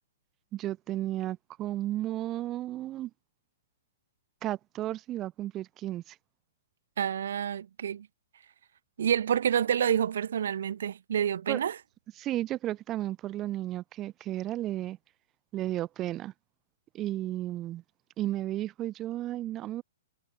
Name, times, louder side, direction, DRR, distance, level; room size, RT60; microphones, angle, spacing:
voice 1, 0.5-3.1 4.4-6.2 11.5-11.6 12.2-15.0 15.5-16.3 16.9-17.8 18.2-19.8, right 14 dB, 25° right, 4.5 m, -33 dB
voice 2, 7.0-8.1 9.0-11.8, right 9 dB, 60° right, 1.7 m, -28 dB
figure-of-eight pair, 110°, 0 cm